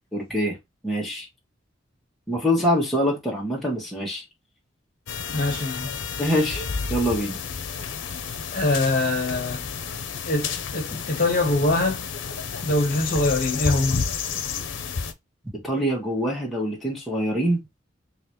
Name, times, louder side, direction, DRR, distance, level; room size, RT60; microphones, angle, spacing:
voice 1, 0.1-0.6 0.8-1.3 2.3-4.2 6.2-6.6 6.9-7.4 15.6-17.6, equal, ahead, 1.4 m, -24 dB
sound 1, 5.1-15.1, left 6 dB, 85° left, 0.6 m, -31 dB
voice 2, 5.3-5.9 8.5-9.6 10.2-12.0 12.6-14.0, left 2 dB, 50° left, 1.4 m, -23 dB
3.9 x 2.9 x 3.0 m
head